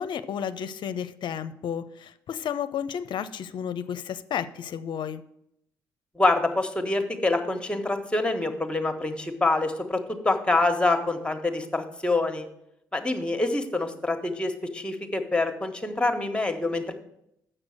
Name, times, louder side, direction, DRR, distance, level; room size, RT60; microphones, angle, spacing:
voice 1, 0.0-5.2, left 8 dB, 60° left, 12 dB, 0.5 m, -32 dB
voice 2, 6.2-12.5 12.9-16.9, left 2 dB, 10° left, 6 dB, 1.3 m, -26 dB
7.7 x 6.1 x 6.4 m, 0.78 s
hypercardioid pair, 55°, 9 cm